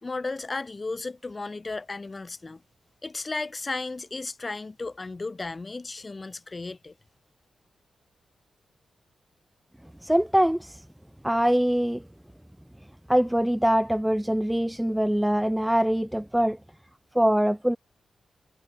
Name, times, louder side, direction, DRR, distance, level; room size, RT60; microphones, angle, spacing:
voice 1, 0.0-2.6 3.0-6.9, left 3 dB, 30° left, 2.6 m, -34 dB
voice 2, 10.0-10.8 11.2-12.0 13.1-16.6 17.2-17.8, equal, 5° right, 0.4 m, -23 dB
cardioid pair, 95°, 0 cm